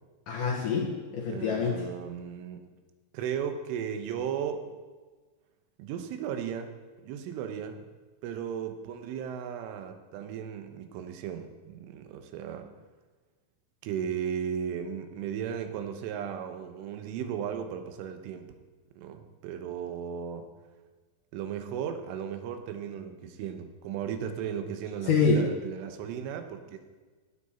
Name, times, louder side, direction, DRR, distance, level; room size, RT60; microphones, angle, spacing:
voice 1, 0.3-1.8 25.1-25.4, left 4 dB, 80° left, -1 dB, 1.9 m, -26 dB
voice 2, 1.3-2.7 3.1-4.7 5.8-7.8 8.2-12.7 13.8-18.6 19.0-20.5 21.3-26.8, right 8 dB, 85° right, 7 dB, 3.5 m, -36 dB
17.0 x 8.6 x 4.3 m, 1.4 s
omnidirectional pair, 5.5 m